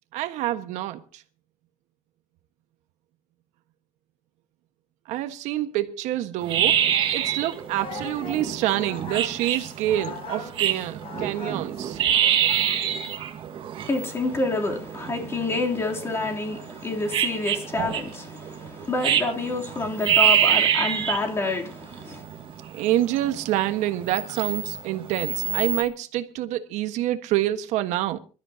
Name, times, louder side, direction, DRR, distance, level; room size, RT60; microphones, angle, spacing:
voice 1, 0.1-1.0 5.1-6.8 7.1-12.0 22.7-28.2, right 13 dB, 70° right, 1.4 m, -27 dB
sound 1, 6.4-25.8, right 9 dB, 45° right, 1.7 m, -26 dB
Singing, 7.7-12.8, left 3 dB, 50° left, 7.4 m, -39 dB
voice 2, 13.8-22.2, left 3 dB, 20° left, 3.2 m, -28 dB
26.0 x 13.0 x 2.8 m
cardioid pair, 160°, 13 cm